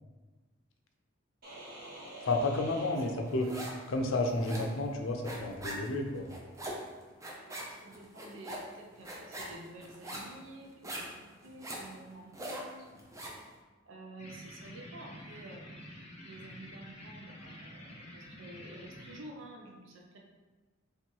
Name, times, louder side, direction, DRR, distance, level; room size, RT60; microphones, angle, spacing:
sound 1, 1.4-4.1, right 1 dB, 50° right, 1.1 m, -47 dB
voice 1, 2.2-3.5 3.9-6.3, left 2 dB, 70° left, 3 dB, 0.5 m, -31 dB
sound 2, 3.0-3.9 4.1-13.5, right 1 dB, 15° right, 0.5 m, -42 dB
voice 2, 7.4-12.9 13.8-20.2, right 2 dB, 70° right, 0 dB, 0.6 m, -50 dB
sound 3, 14.2-19.2, equal, 35° left, 0.7 m, -49 dB
3.3 x 3.0 x 4.5 m, 1.2 s
head